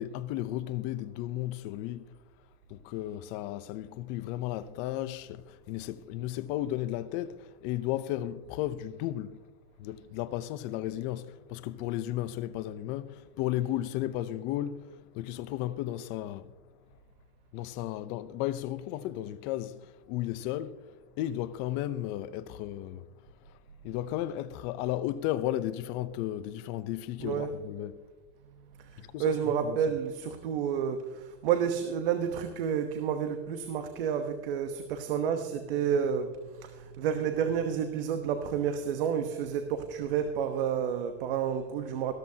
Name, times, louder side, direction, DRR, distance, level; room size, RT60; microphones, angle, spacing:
voice 1, 0.0-2.1 2.7-9.5 9.8-17.0 17.5-23.1 23.5-23.6 23.8-28.0 29.0-29.8, left 13 dB, 40° left, 0.7 m, -34 dB
voice 2, 27.2-27.5 28.8-42.1, right 8 dB, 70° right, 1.1 m, -30 dB
14.0 x 13.0 x 2.8 m
supercardioid pair, 140°, 29 cm